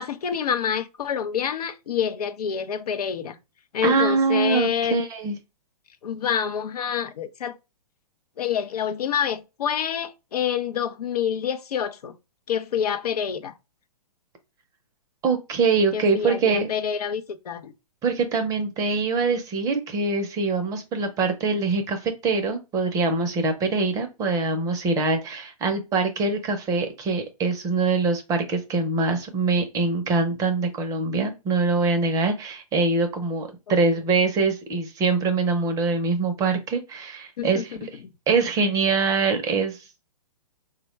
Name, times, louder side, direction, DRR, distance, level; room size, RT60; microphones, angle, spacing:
voice 1, 0.0-3.4 3.7-5.0 6.0-7.6 8.4-12.1 12.5-13.5 15.9-17.7 37.4-37.6, left 8 dB, 75° left, 0.5 m, -27 dB
voice 2, 3.8-5.3 15.2-16.7 18.0-37.8 38.3-39.8, right 4 dB, 15° right, 0.5 m, -23 dB
3.4 x 2.2 x 3.0 m
hypercardioid pair, 130°, 20 cm